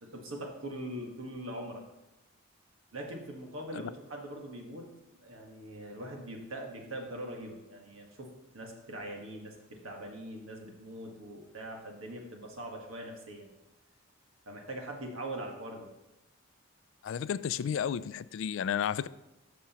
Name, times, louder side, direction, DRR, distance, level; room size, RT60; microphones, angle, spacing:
voice 1, 0.0-1.8 2.9-4.9 5.2-13.5 14.4-15.9, right 1 dB, 75° right, 1 dB, 1.5 m, -42 dB
voice 2, 17.0-19.1, left 8 dB, 65° left, 17 dB, 0.3 m, -32 dB
13.0 x 6.1 x 3.0 m, 0.96 s
head